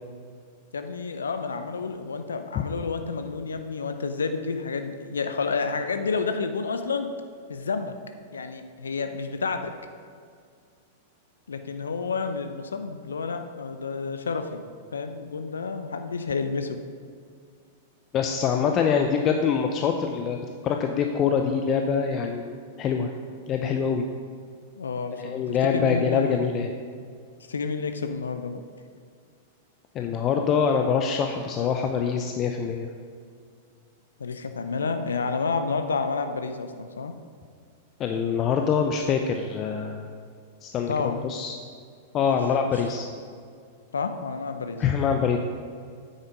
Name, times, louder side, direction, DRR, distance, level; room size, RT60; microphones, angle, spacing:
voice 1, 0.7-7.1 7.5-7.9 8.3-9.7 11.5-14.6 14.9-16.8 24.8-26.7 27.5-28.6 34.2-37.1 40.9-41.3 42.2-42.4 42.6-42.8 43.9-44.8, left 4 dB, 75° left, 8 dB, 0.6 m, -30 dB
voice 2, 18.1-20.4 20.6-23.1 23.5-24.1 25.1-26.7 29.9-32.9 38.0-40.0 40.6-41.5 42.1-43.1 44.8-45.4, left 6 dB, 35° left, 4 dB, 0.7 m, -24 dB
9.4 x 8.1 x 5.2 m, 2.2 s
figure-of-eight pair, 95°, 0 cm